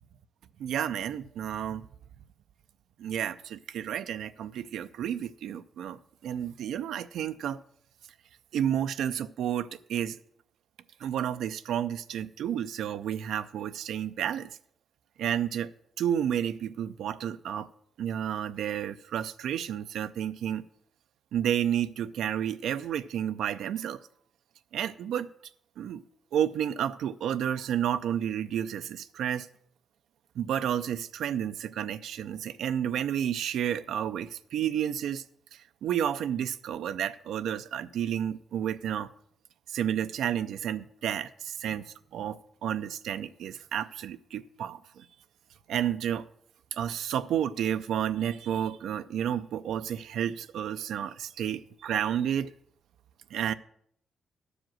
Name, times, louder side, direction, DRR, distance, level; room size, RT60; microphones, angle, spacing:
voice 1, 0.6-1.9 3.0-7.6 8.5-10.2 11.0-14.5 15.2-15.7 16.0-17.7 18.0-20.6 21.3-24.0 24.7-25.3 25.8-26.0 26.3-29.5 30.4-35.2 35.5-39.1 39.7-45.1 45.7-46.3 46.7-52.5 53.3-53.5, right 9 dB, 85° right, 0.4 m, -31 dB
11.5 x 5.0 x 7.5 m
cardioid pair, 95°, 0 cm